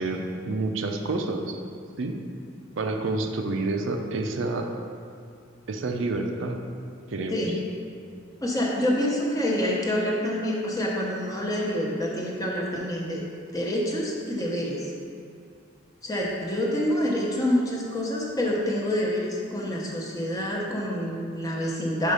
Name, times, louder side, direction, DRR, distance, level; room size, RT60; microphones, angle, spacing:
voice 1, 0.0-1.6 2.0-2.2 2.7-4.7 5.7-6.6 7.1-7.4, right 2 dB, 70° right, 4 dB, 0.5 m, -28 dB
voice 2, 8.4-13.2 13.5-14.9 16.0-22.1, equal, 20° left, -3 dB, 0.9 m, -27 dB
5.3 x 5.0 x 5.4 m, 2.3 s
head